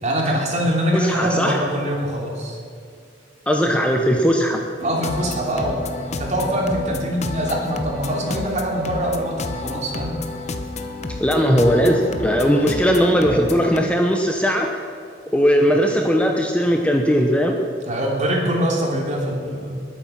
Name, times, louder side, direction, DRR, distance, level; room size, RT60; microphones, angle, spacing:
voice 1, 0.0-2.6 4.8-10.2 17.8-19.8, equal, 40° right, -1 dB, 3.2 m, -23 dB
voice 2, 0.9-1.6 3.5-4.6 11.2-14.9 15.3-17.6, equal, 5° left, 2 dB, 0.9 m, -18 dB
sound 1, 4.8-13.8, left 2 dB, 35° left, 1.0 m, -31 dB
20.5 x 8.7 x 5.9 m, 2.3 s
head